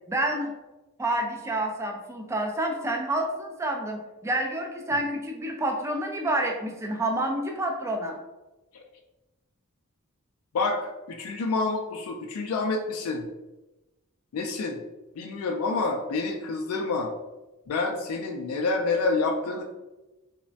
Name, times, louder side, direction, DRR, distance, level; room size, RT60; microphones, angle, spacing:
voice 1, 0.1-0.5 1.0-8.2, right 1 dB, 15° right, 2 dB, 0.3 m, -28 dB
voice 2, 10.5-13.3 14.3-14.8 15.2-17.1 17.7-19.6, left 3 dB, 75° left, 2 dB, 0.3 m, -28 dB
3.1 x 2.0 x 2.6 m, 1.1 s
head